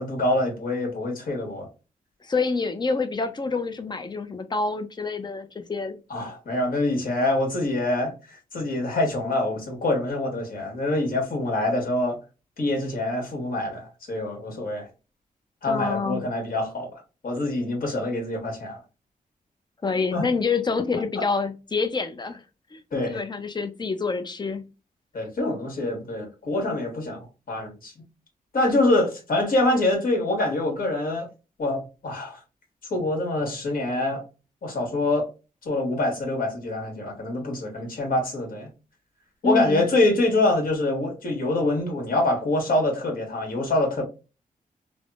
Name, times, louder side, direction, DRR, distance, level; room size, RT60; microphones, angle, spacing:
voice 1, 0.0-1.7 6.1-12.2 12.6-14.9 15.6-16.9 17.2-18.8 20.1-20.2 22.9-23.2 25.1-27.2 27.5-27.9 28.5-31.3 31.6-32.4 32.9-34.2 34.6-35.3 35.6-38.7 39.4-44.0, left 2 dB, 70° left, 1.5 m, -25 dB
voice 2, 2.2-6.0 15.7-16.2 19.8-22.4 22.7-22.8 23.1-24.7 39.4-39.8, left 4 dB, 30° left, 0.5 m, -27 dB
3.4 x 2.1 x 2.3 m
cardioid pair, 90°, 15 cm